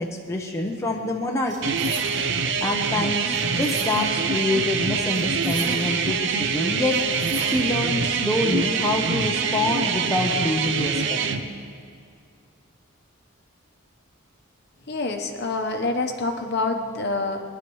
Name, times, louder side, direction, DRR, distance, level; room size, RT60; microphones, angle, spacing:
voice 1, 0.0-1.8 2.6-7.0 7.4-11.2, left 2 dB, 15° left, 0 dB, 0.7 m, -26 dB
sound 1, 1.5-2.4 3.3-4.3 5.1-6.1 6.9-7.9, right 3 dB, 35° right, 1.8 m, -39 dB
sound 2, 1.6-11.4, right 5 dB, 60° right, 0.6 m, -25 dB
voice 2, 14.9-17.4, left 3 dB, 50° left, 5 dB, 1.0 m, -26 dB
21.0 x 11.0 x 3.1 m, 2.3 s
head